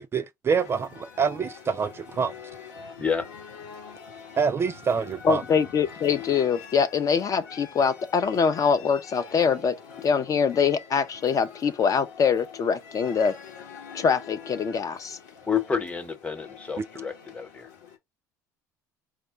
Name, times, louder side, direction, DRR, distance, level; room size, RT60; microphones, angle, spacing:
voice 1, 0.0-2.3 4.4-5.4 16.8-16.9, right 6 dB, 25° right, 0.3 m, -26 dB
sound 1, 0.5-18.0, left 7 dB, 75° left, 1.1 m, -45 dB
voice 2, 5.2-9.7 10.0-13.3 13.9-15.2, left 6 dB, 35° left, 0.5 m, -24 dB
voice 3, 15.5-17.7, left 6 dB, 15° left, 1.0 m, -29 dB
4.7 x 2.1 x 3.7 m
hypercardioid pair, 65°, 9 cm